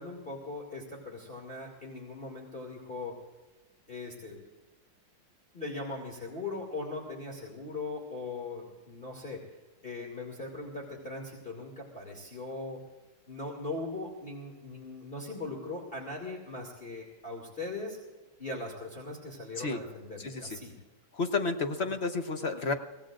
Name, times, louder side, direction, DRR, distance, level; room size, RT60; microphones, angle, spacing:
voice 1, 0.0-3.2 3.9-4.4 5.5-9.4 9.8-12.8 13.3-18.0 18.4-20.7, left 2 dB, 25° left, -2 dB, 2.6 m, -40 dB
voice 2, 20.2-20.6 21.2-22.7, left 3 dB, 45° left, 5 dB, 0.9 m, -31 dB
24.0 x 17.0 x 2.5 m, 1.2 s
omnidirectional pair, 2.3 m